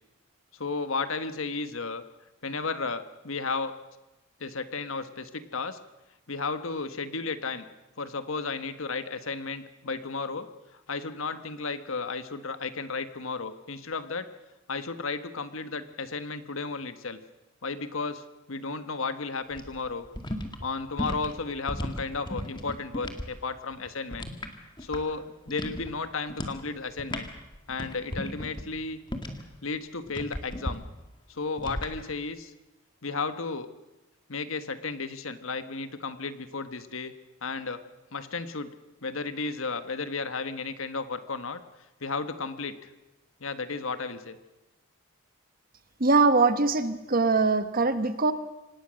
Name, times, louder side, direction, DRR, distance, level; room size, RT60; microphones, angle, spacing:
voice 1, 0.5-2.0 2.4-3.8 4.4-5.8 6.3-7.6 8.0-14.3 14.7-17.2 17.6-18.2 18.5-20.0 20.6-24.3 24.8-27.3 27.7-29.0 29.6-30.8 31.3-32.5 33.0-33.7 34.3-37.1 37.4-37.8 38.1-38.7 39.0-41.6 42.0-42.8 43.4-44.4, left 4 dB, 75° left, 11 dB, 1.4 m, -33 dB
sound 1, 19.5-23.3 23.6-25.2 25.5-25.9 26.3-26.6 26.9-29.5 30.1-30.7 31.6-31.9, left 1 dB, 20° left, 1.9 m, -35 dB
voice 2, 46.0-48.3, right 3 dB, 45° right, 11 dB, 1.2 m, -22 dB
26.0 x 18.5 x 6.4 m, 0.99 s
head